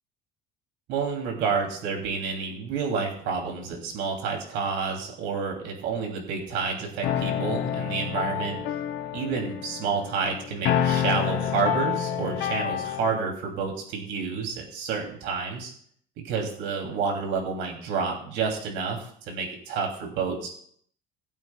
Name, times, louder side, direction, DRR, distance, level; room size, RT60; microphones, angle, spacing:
voice 1, 0.9-8.6 9.1-15.7 16.2-20.5, right 5 dB, 75° right, 1 dB, 2.9 m, -29 dB
sound 1, 7.0-13.2, left 9 dB, 65° left, 1.3 m, -28 dB
20.0 x 8.8 x 2.3 m, 0.62 s
cardioid pair, 155°, 19 cm